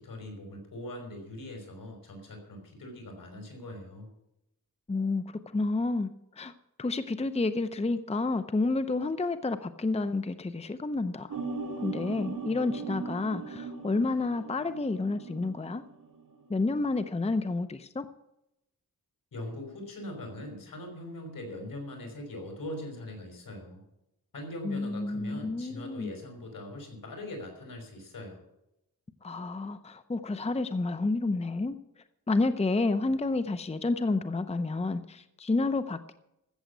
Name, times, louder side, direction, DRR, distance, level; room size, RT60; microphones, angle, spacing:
voice 1, 0.0-4.1 19.3-23.8 24.3-28.4, left 1 dB, 75° left, 3 dB, 5.3 m, -41 dB
voice 2, 4.9-6.1 6.4-6.5 6.8-11.4 11.8-15.8 16.5-18.1 24.6-26.1 29.2-31.8 32.3-36.1, left 3 dB, 20° left, 11 dB, 0.7 m, -30 dB
sound 1, 11.3-16.5 16.8-17.3, right 4 dB, 65° right, 2.1 m, -39 dB
14.5 x 7.7 x 8.3 m, 0.85 s
wide cardioid pair, 90°, 34 cm